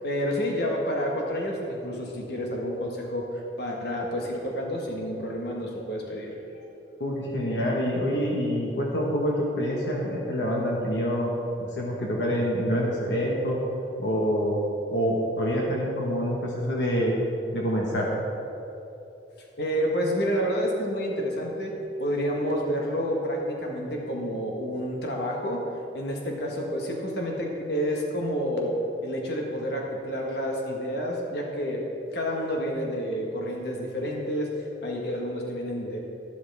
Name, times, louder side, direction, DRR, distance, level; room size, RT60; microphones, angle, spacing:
voice 1, 0.0-6.3 19.6-21.7 22.0-25.6 25.9-31.8 32.1-34.5 34.8-36.0, equal, 65° left, -1 dB, 1.6 m, -29 dB
voice 2, 7.0-11.3 11.6-13.6 14.0-14.6 14.9-17.2 17.5-18.1, equal, 80° left, -2 dB, 1.5 m, -26 dB
12.5 x 12.0 x 3.6 m, 2.8 s
head